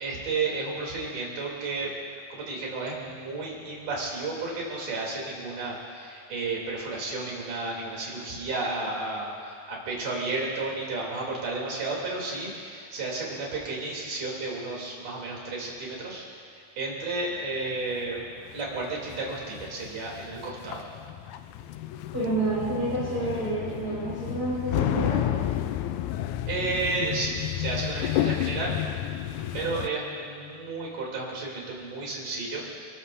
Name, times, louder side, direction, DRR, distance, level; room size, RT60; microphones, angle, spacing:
voice 1, 0.0-1.9 2.3-16.3 16.8-18.2 18.5-20.9 26.5-28.8 29.5-32.7, right 3 dB, 90° right, -3 dB, 4.8 m, -32 dB
sound 1, 18.2-29.9, left 12 dB, 80° left, 2.0 m, -31 dB
voice 2, 22.1-25.2, right 2 dB, 30° right, -12 dB, 5.5 m, -29 dB
29.0 x 14.5 x 2.7 m, 2.2 s
omnidirectional pair, 3.5 m